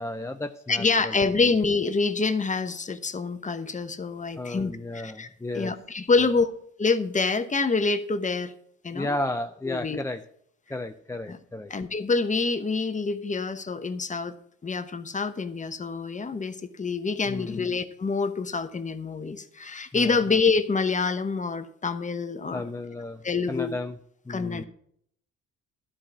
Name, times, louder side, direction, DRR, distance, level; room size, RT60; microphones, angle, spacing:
voice 1, 0.0-1.5 4.4-5.7 8.9-10.2 10.7-11.7 17.3-17.7 19.9-20.2 22.5-23.2 23.5-24.0 24.3-24.6, left 2 dB, 10° left, 6 dB, 0.5 m, -33 dB
voice 2, 0.7-5.3 5.5-6.5 6.8-8.5 8.8-9.2 9.6-10.0 11.3-11.4 11.7-14.4 14.6-22.6 23.2-23.8 24.3-24.6, left 4 dB, 25° left, 10 dB, 0.9 m, -26 dB
11.5 x 5.0 x 7.3 m, 0.67 s
cardioid pair, 90°, 30 cm